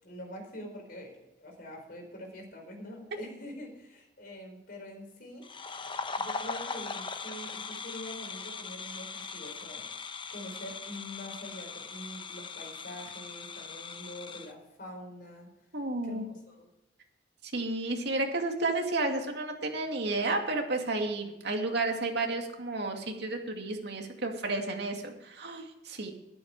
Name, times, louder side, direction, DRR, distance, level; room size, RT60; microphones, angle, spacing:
voice 1, 0.0-5.8 6.1-9.9 10.3-15.5 16.0-16.7, left 1 dB, 55° left, 1 dB, 4.8 m, -45 dB
sound 1, 5.4-14.5, left 4 dB, 25° left, 0.9 m, -40 dB
voice 2, 15.7-16.2 17.4-26.1, right 2 dB, 65° right, 3 dB, 2.4 m, -32 dB
12.5 x 12.0 x 4.9 m, 0.92 s
head